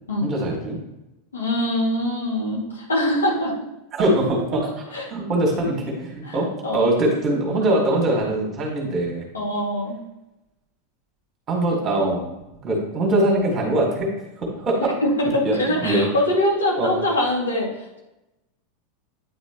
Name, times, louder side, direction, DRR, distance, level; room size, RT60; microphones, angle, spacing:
voice 1, 0.2-0.8 3.9-6.5 6.7-9.3 11.5-12.2 12.6-14.1 14.4-15.0 15.4-15.6 15.8-16.1 16.8-17.0, right 1 dB, 30° right, -1 dB, 1.7 m, -22 dB
voice 2, 1.3-3.6 4.9-5.0 6.3-6.4 6.6-6.9 9.3-10.0 14.8-17.7, left 1 dB, 75° left, -4 dB, 2.1 m, -23 dB
9.3 x 4.2 x 2.9 m, 0.97 s
figure-of-eight pair, 85°, 0 cm